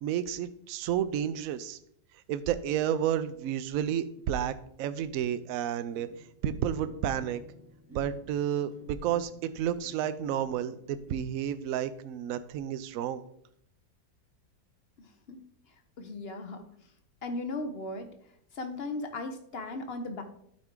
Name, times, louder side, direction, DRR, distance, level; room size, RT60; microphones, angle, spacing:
voice 1, 0.0-1.8 2.3-6.1 6.4-7.4 7.9-13.2, right 10 dB, 70° right, 12 dB, 0.8 m, -31 dB
sound 1, 5.4-5.5 5.9-11.2, left 1 dB, 15° right, 0.5 m, -52 dB
voice 2, 15.0-15.4 15.7-16.6 17.2-18.1 18.5-20.2, left 2 dB, 60° left, 7 dB, 0.6 m, -37 dB
11.5 x 4.6 x 3.7 m, 0.71 s
omnidirectional pair, 1.9 m